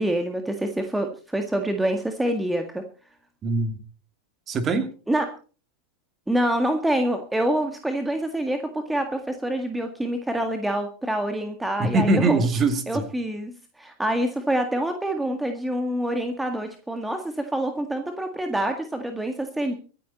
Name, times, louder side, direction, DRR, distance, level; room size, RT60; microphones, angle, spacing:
voice 1, 0.0-2.8 5.1-5.3 6.3-12.5 12.9-19.7, right 1 dB, 5° right, 1.8 m, -26 dB
voice 2, 3.4-3.8 4.5-4.9 11.8-13.0, right 3 dB, 25° right, 2.5 m, -22 dB
24.5 x 9.3 x 4.2 m
figure-of-eight pair, 90°, 0 cm